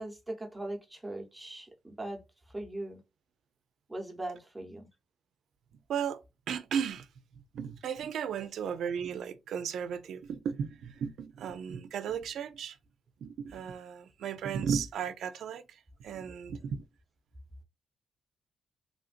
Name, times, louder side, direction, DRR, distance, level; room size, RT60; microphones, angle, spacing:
voice 1, 0.0-2.2 2.5-3.0 3.9-4.9, right 1 dB, 10° right, 0.9 m, -40 dB
voice 2, 6.5-7.1 7.5-12.8 13.2-15.6 16.0-16.8, right 7 dB, 75° right, 0.5 m, -35 dB
3.4 x 2.5 x 2.4 m
cardioid pair, 140°, 0 cm